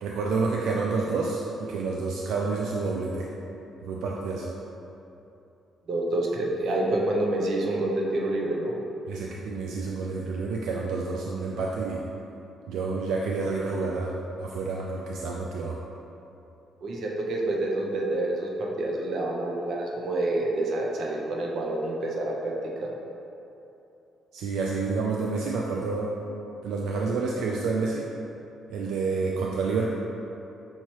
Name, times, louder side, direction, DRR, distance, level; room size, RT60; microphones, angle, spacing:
voice 1, 0.0-3.3 3.8-4.5 9.1-12.0 12.7-15.8 24.3-26.1 26.6-28.1 28.7-29.9, right 4 dB, 85° right, -2 dB, 0.3 m, -29 dB
voice 2, 5.9-8.7 16.8-22.5 22.8-22.9, right 2 dB, 60° right, -1 dB, 0.7 m, -28 dB
5.6 x 2.9 x 3.1 m, 2.9 s
cardioid pair, 110°, 0 cm